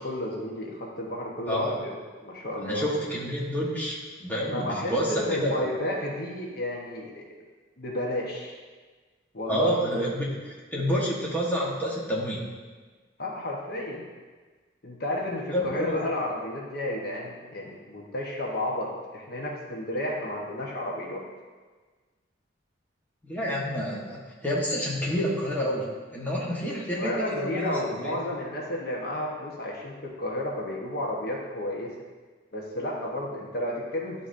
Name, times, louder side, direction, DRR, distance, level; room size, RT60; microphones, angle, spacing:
voice 1, 0.0-2.9 4.5-7.3 7.8-8.5 9.3-9.8 13.2-14.0 14.8-21.2 27.0-31.9 32.5-34.1, left 1 dB, 50° left, -2 dB, 0.9 m, -32 dB
voice 2, 2.6-5.5 9.5-12.4 15.5-16.0 23.3-28.1, equal, 10° left, -5 dB, 1.1 m, -29 dB
11.0 x 3.9 x 2.5 m, 1.4 s
head